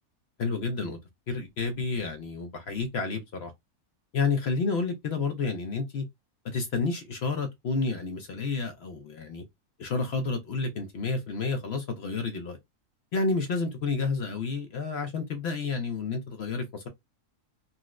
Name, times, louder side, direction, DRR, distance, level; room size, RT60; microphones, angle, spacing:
voice 1, 0.4-1.0 1.3-3.5 4.1-6.0 6.4-9.4 9.8-12.6 13.1-16.9, left 4 dB, 60° left, 0.7 m, -30 dB
4.0 x 2.0 x 2.3 m
omnidirectional pair, 1.6 m